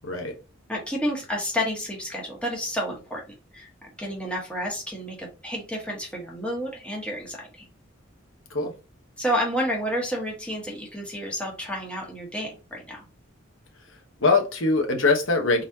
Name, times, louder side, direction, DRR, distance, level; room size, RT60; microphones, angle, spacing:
voice 1, 0.0-0.4 8.5-8.7 14.2-15.7, left 3 dB, 85° left, 1.1 m, -22 dB
voice 2, 0.7-3.2 3.5-3.7 4.0-7.7 9.2-13.0, equal, 5° left, 1.3 m, -30 dB
3.9 x 3.2 x 2.7 m
head